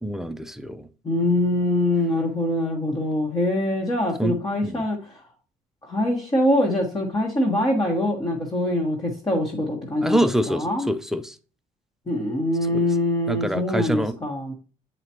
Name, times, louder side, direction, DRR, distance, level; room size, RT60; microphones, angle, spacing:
voice 1, 0.0-0.9 4.2-4.4 4.6-4.8 10.0-11.4 12.7-12.8 13.3-14.2, right 1 dB, 5° right, 0.5 m, -25 dB
voice 2, 1.0-5.2 5.8-10.9 12.1-14.5, left 1 dB, 25° left, 1.5 m, -24 dB
7.9 x 5.0 x 2.9 m
cardioid pair, 110°, 16 cm